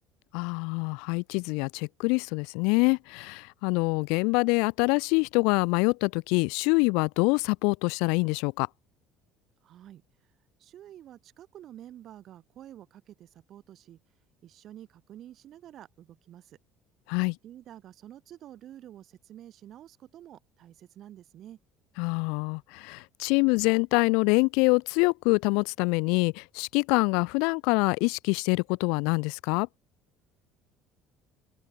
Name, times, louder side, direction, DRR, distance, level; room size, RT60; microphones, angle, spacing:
voice 1, 0.3-8.7 17.1-17.4 22.0-29.7, left 31 dB, 80° left, 0.3 m, -25 dB
voice 2, 9.6-10.0 10.6-14.0 14.4-16.6 17.4-21.6, right 11 dB, 55° right, 4.9 m, -49 dB
open air
supercardioid pair, 95°, 0 cm